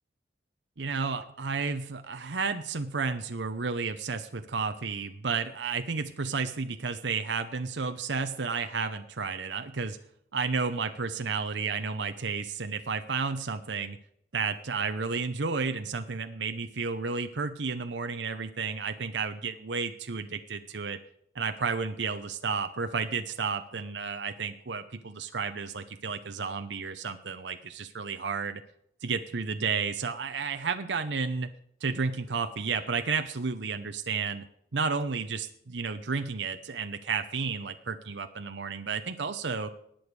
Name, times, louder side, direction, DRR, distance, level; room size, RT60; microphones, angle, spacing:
voice 1, 0.8-10.0 10.3-14.0 14.3-21.0 21.3-28.6 29.0-31.5 31.8-34.4 34.7-39.7, right 5 dB, 75° right, 8 dB, 0.8 m, -32 dB
19.5 x 7.0 x 4.8 m, 0.70 s
head